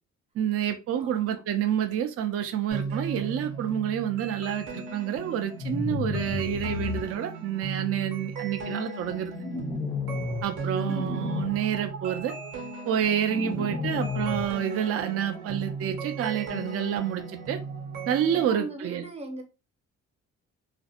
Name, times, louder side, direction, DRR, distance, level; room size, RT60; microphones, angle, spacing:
voice 1, 0.4-9.3 10.4-12.3 12.8-17.6 18.1-19.0, right 9 dB, 50° right, 0.4 m, -28 dB
voice 2, 1.0-1.4 18.3-19.4, right 2 dB, 20° right, 0.7 m, -40 dB
sound 1, 2.7-18.4, right 4 dB, 90° right, 1.1 m, -37 dB
sound 2, 5.6-7.0 9.3-10.5 10.8-11.5 13.3-14.5, left 5 dB, 20° left, 0.4 m, -32 dB
2.4 x 2.0 x 2.7 m
cardioid pair, 90°, 30 cm